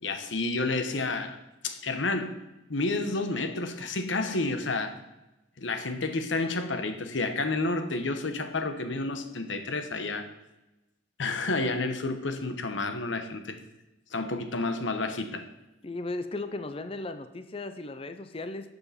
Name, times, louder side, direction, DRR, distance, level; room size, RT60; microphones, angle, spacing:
voice 1, 0.0-2.3 2.7-4.9 5.6-10.3 11.2-13.6 14.1-15.4, left 3 dB, 80° left, 8 dB, 1.1 m, -30 dB
voice 2, 15.8-18.7, left 2 dB, 30° left, 9 dB, 0.5 m, -36 dB
12.0 x 6.8 x 4.3 m, 0.97 s
head